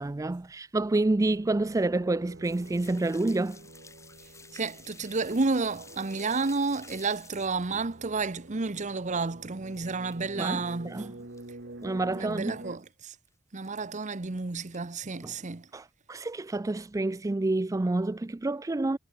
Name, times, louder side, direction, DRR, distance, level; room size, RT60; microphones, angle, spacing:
voice 1, 0.0-3.6 10.4-11.1 11.8-12.6 15.2-15.3 15.7-19.0, right 2 dB, 15° right, 0.4 m, -28 dB
sound 1, 1.2-12.8, right 2 dB, 55° right, 2.1 m, -48 dB
sound 2, 2.4-10.4 10.7-11.5 11.8-11.9 12.3-12.4 12.6-12.9 13.6-14.2 14.6-15.2, left 4 dB, 15° left, 3.5 m, -53 dB
voice 2, 4.5-11.1 12.1-13.2 13.5-15.7, right 3 dB, 35° right, 0.9 m, -31 dB
head